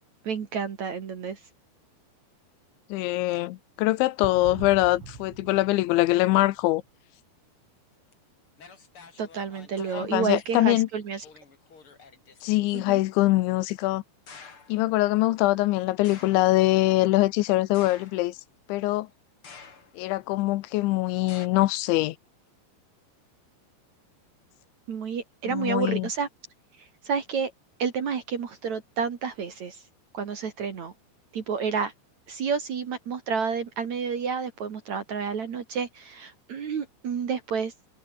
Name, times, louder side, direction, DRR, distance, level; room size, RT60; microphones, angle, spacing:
voice 1, 0.2-1.4 9.2-11.2 12.7-13.0 24.9-26.3 26.8-27.5 27.8-29.8 30.1-30.9 31.3-31.9 32.3-37.7, right 6 dB, 50° right, 2.7 m, -30 dB
voice 2, 2.9-6.8 9.9-10.9 12.4-14.0 14.7-18.4 18.7-19.1 20.0-22.2 25.5-26.1, left 18 dB, 80° left, 3.2 m, -23 dB
sound 1, 4.2-6.9, right 6 dB, 75° right, 8.4 m, -43 dB
sound 2, 8.1-8.2 8.6-10.5 11.2-12.8 14.3-14.8 16.0-16.6 17.7-18.5 19.4-20.1 21.3-21.5, left 5 dB, 30° left, 3.4 m, -49 dB
omnidirectional pair, 5.4 m